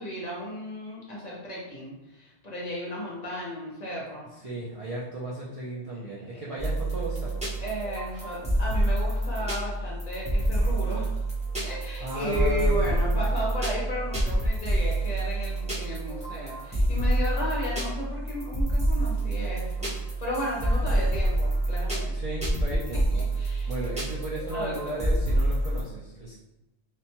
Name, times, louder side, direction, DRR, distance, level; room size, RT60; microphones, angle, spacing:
voice 1, 0.0-4.3 6.3-6.5 7.6-11.2 11.6-22.2 23.4-23.7 24.5-25.0, equal, 45° left, -5 dB, 0.6 m, -34 dB
voice 2, 4.4-7.6 12.0-13.1 22.1-26.3, right 1 dB, 60° right, -5 dB, 0.3 m, -35 dB
sound 1, 6.6-25.8, right 1 dB, 10° right, 0.6 m, -27 dB
2.9 x 2.1 x 2.9 m, 0.92 s
omnidirectional pair, 1.2 m